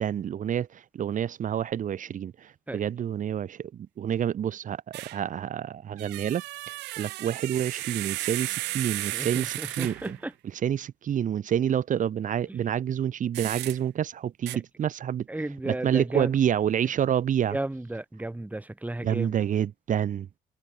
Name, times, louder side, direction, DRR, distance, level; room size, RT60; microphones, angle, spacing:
voice 1, 0.0-10.2 10.5-15.3 15.6-17.6 19.0-20.3, right 9 dB, 50° right, 2.5 m, -28 dB
sound 1, 4.9-5.2 6.0-10.2 13.3-13.8 14.5-14.6, right 20 dB, 85° right, 2.0 m, -34 dB
voice 2, 9.1-10.3 15.3-16.3 17.5-19.3, right 2 dB, 10° right, 3.8 m, -33 dB
cardioid pair, 110°, 17 cm